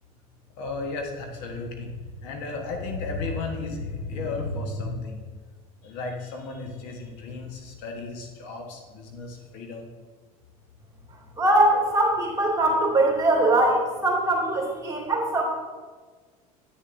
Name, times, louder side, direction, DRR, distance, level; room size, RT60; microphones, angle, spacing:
voice 1, 0.6-5.2 5.8-9.9, left 3 dB, 65° left, 2 dB, 1.2 m, -34 dB
voice 2, 11.4-15.4, right 1 dB, 20° right, -2 dB, 2.3 m, -22 dB
9.4 x 6.6 x 2.6 m, 1.4 s
hypercardioid pair, 80°, 19 cm